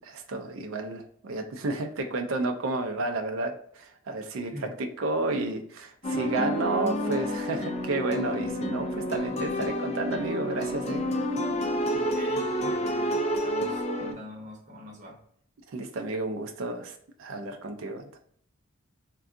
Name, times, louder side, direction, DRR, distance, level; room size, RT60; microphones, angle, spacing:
voice 1, 0.0-4.5 4.8-11.0 15.7-18.2, right 2 dB, 65° right, 4 dB, 0.4 m, -31 dB
voice 2, 4.4-4.8 11.9-15.2, left 1 dB, 35° right, -2 dB, 0.9 m, -44 dB
sound 1, 6.0-14.1, equal, 30° left, 0.4 m, -29 dB
3.5 x 2.3 x 2.4 m, 0.65 s
head